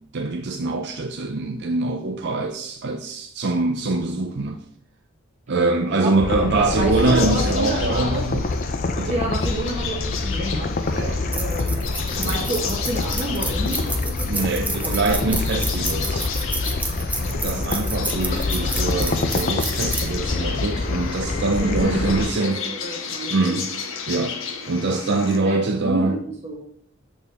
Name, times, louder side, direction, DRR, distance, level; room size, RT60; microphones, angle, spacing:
voice 1, 0.0-4.6 5.5-8.5 9.0-9.2 10.9-11.2 12.2-12.5 14.2-16.3 17.3-22.6 23.3-23.7 24.1-24.4 24.7-26.2, right 3 dB, 55° right, 0.6 m, -24 dB
voice 2, 5.9-8.3 9.0-10.7 11.3-11.9 12.2-15.2 17.2-17.7 21.6-23.6 25.2-26.6, right 1 dB, 35° right, 1.1 m, -29 dB
sound 1, 6.2-22.3, left 3 dB, 40° left, 0.5 m, -26 dB
sound 2, 7.0-25.4, left 6 dB, 65° left, 0.9 m, -33 dB
sound 3, 10.8-21.2, right 2 dB, 5° right, 0.7 m, -32 dB
6.9 x 6.3 x 3.7 m
head